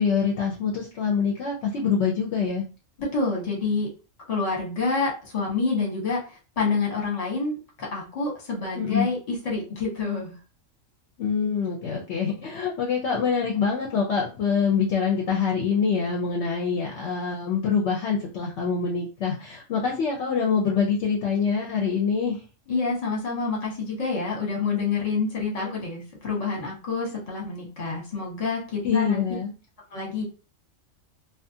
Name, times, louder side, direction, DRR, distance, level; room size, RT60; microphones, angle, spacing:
voice 1, 0.0-2.6 8.8-9.1 11.2-22.4 25.6-25.7 28.8-29.5, left 6 dB, 65° left, -2 dB, 0.8 m, -25 dB
voice 2, 3.0-3.9 4.3-6.2 6.6-10.4 22.7-29.2 29.9-30.2, left 4 dB, 30° left, -2 dB, 1.0 m, -27 dB
2.4 x 2.4 x 2.7 m, 0.33 s
omnidirectional pair, 1.4 m